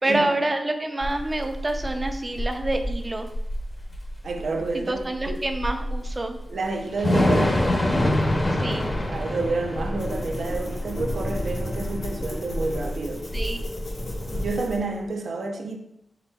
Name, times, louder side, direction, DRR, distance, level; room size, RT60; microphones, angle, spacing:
voice 1, 0.0-3.3 4.7-6.4 8.6-8.9 13.3-13.6, right 2 dB, 25° right, 0.5 m, -27 dB
Thunder / Rain, 1.0-14.5, left 1 dB, 30° left, 0.7 m, -27 dB
voice 2, 4.2-5.4 6.5-7.7 9.1-13.3 14.3-15.8, right 3 dB, 75° right, 0.6 m, -29 dB
sound 1, 10.0-15.1, left 1 dB, 80° left, 1.2 m, -35 dB
5.8 x 3.8 x 2.3 m
wide cardioid pair, 130°, 0 cm